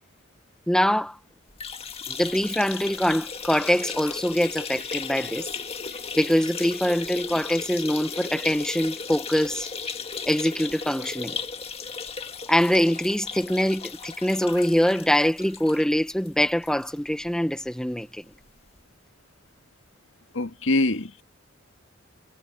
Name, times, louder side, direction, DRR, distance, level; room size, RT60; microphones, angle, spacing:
voice 1, 0.7-1.2 2.1-5.5 6.2-9.7 10.3-11.4 12.5-18.2, equal, 5° left, 0.9 m, -24 dB
sound 1, 1.5-16.9 17.3-17.4 17.7-17.8 18.8-18.9, left 5 dB, 30° left, 1.9 m, -36 dB
voice 2, 20.3-21.2, left 2 dB, 75° left, 1.8 m, -24 dB
head